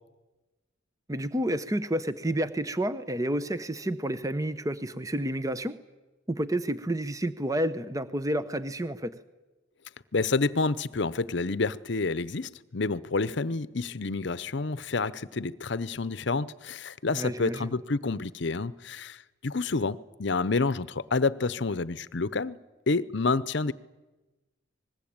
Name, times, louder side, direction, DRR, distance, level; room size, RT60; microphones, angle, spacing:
voice 1, 1.1-5.8 6.3-9.1 17.1-17.7, right 1 dB, 15° right, 0.8 m, -30 dB
voice 2, 10.1-22.6 22.9-23.7, left 3 dB, 60° left, 0.8 m, -29 dB
26.0 x 20.5 x 8.8 m
head